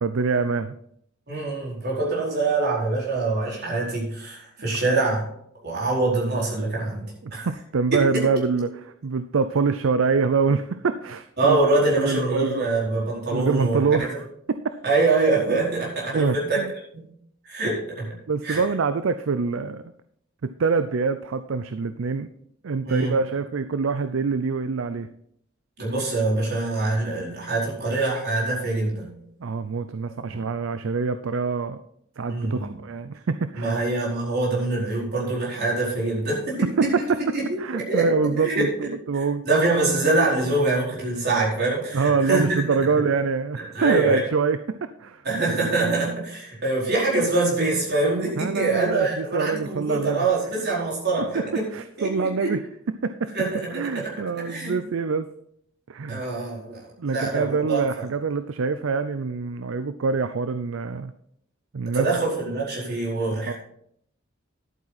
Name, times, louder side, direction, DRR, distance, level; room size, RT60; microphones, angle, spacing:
voice 1, 0.0-0.7 7.2-8.7 9.0-11.6 12.0-12.7 13.3-14.6 16.1-16.7 18.3-19.8 20.4-22.3 22.6-25.1 29.4-31.8 32.2-33.8 36.8-37.2 37.6-39.5 41.9-44.6 45.0-45.2 48.4-50.3 51.2-52.6 53.0-53.3 53.7-55.3 55.9-56.2 57.0-61.1 61.7-62.1 63.3-63.5, right 4 dB, 70° right, 11 dB, 0.5 m, -25 dB
voice 2, 1.3-5.2 5.6-7.5 7.9-8.2 11.4-14.2 14.8-16.6 16.9-17.1 17.4-18.6 22.8-23.1 25.8-29.1 30.3-30.4 32.3-32.8 33.5-37.1 37.3-38.7 39.4-42.6 43.6-44.2 45.2-51.6 52.0-52.5 53.3-54.8 56.1-57.8 61.9-63.5, right 2 dB, 55° right, -5 dB, 4.6 m, -24 dB
11.0 x 8.7 x 4.1 m, 0.71 s
head